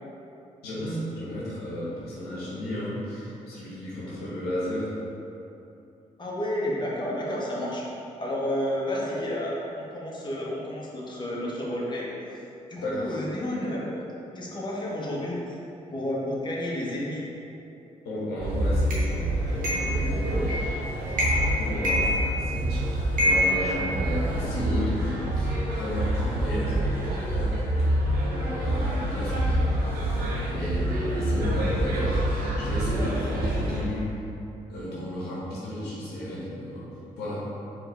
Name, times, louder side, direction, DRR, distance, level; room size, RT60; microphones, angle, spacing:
voice 1, 0.6-5.0 12.8-13.1 18.0-20.8 21.4-27.6 28.3-30.1 30.4-34.1 34.7-36.9 37.2-37.5, left 1 dB, 80° left, -8 dB, 1.1 m, -33 dB
voice 2, 6.2-7.9 8.2-12.1 12.7-13.9 14.3-15.5 15.9-17.2, left 1 dB, 30° left, -5 dB, 1.1 m, -31 dB
sound 1, 18.4-33.8, right 1 dB, 75° right, 0.8 m, -27 dB
sound 2, 18.9-19.0 19.6-20.0 20.5-20.8 21.1-21.5 21.8-22.7 23.2-24.4, left 1 dB, 60° right, 1.2 m, -26 dB
4.5 x 3.4 x 3.3 m, 2.8 s
hypercardioid pair, 45°, 16 cm